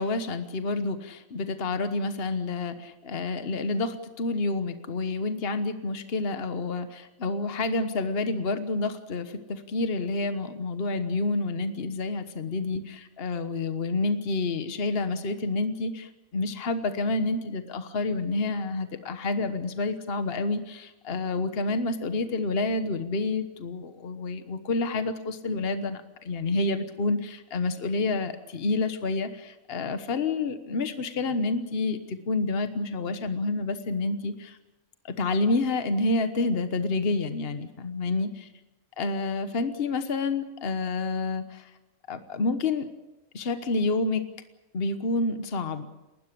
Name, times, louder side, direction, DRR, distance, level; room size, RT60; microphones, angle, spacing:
voice 1, 0.0-34.6 35.0-38.5 39.0-41.7 42.1-42.9 43.3-44.2 44.7-45.9, left 3 dB, 45° left, 9 dB, 1.4 m, -29 dB
29.5 x 13.0 x 8.5 m, 1.0 s
omnidirectional pair, 1.4 m